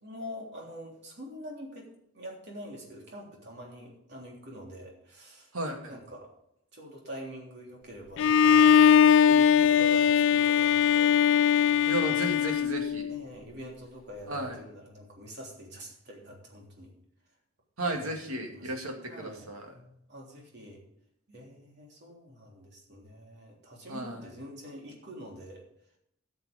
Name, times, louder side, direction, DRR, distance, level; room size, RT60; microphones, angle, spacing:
voice 1, 0.0-5.5 5.9-6.3 6.7-11.2 11.7-11.9 13.1-16.9 17.9-18.1 18.5-18.7 19.1-19.5 19.7-20.8 21.3-25.6, equal, 55° right, -1 dB, 3.4 m, -45 dB
voice 2, 5.5-5.9 11.9-13.1 14.3-14.6 17.8-19.7 23.9-24.2, right 1 dB, 90° right, 2 dB, 2.3 m, -34 dB
Bowed string instrument, 8.2-13.2, left 8 dB, 60° left, 0.3 m, -21 dB
13.5 x 7.0 x 5.2 m, 0.75 s
head